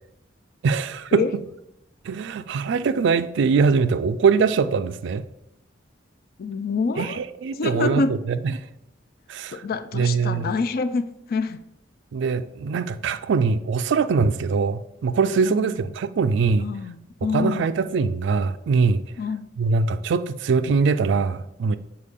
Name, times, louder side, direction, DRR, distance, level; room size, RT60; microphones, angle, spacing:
voice 1, 0.6-1.2 2.0-5.2 7.0-8.4 9.3-9.6 9.9-10.5 12.1-16.7 17.3-19.0 19.6-21.8, right 5 dB, 65° right, 0.3 m, -22 dB
voice 2, 6.4-7.2 7.5-8.2 9.5-11.6 15.4-15.9 16.6-17.7 19.2-19.5, left 4 dB, 55° left, 0.4 m, -27 dB
6.6 x 4.4 x 3.6 m
head